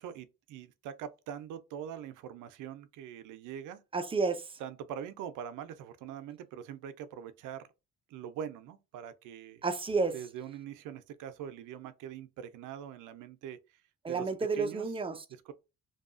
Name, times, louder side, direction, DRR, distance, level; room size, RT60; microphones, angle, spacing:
voice 1, 0.0-3.8 4.6-7.6 8.1-9.6 10.1-13.6 14.1-14.9 15.3-15.5, right 9 dB, 85° right, 0.5 m, -43 dB
voice 2, 3.9-4.4 9.6-10.1 14.0-15.2, right 4 dB, 20° right, 0.4 m, -30 dB
2.7 x 2.3 x 2.4 m
cardioid pair, 90°, 30 cm